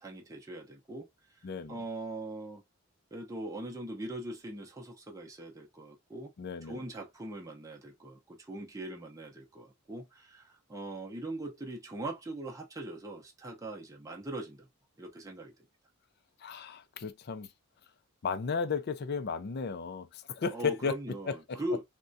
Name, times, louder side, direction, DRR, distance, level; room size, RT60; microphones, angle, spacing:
voice 1, 0.0-1.4 1.7-2.6 3.1-6.3 6.6-14.7 15.0-15.5 20.5-21.8, right 1 dB, 15° right, 0.6 m, -41 dB
voice 2, 1.4-1.8 6.4-6.8 16.4-17.5 18.2-21.0 21.3-21.6, left 5 dB, 45° left, 0.4 m, -34 dB
3.5 x 2.2 x 2.5 m
head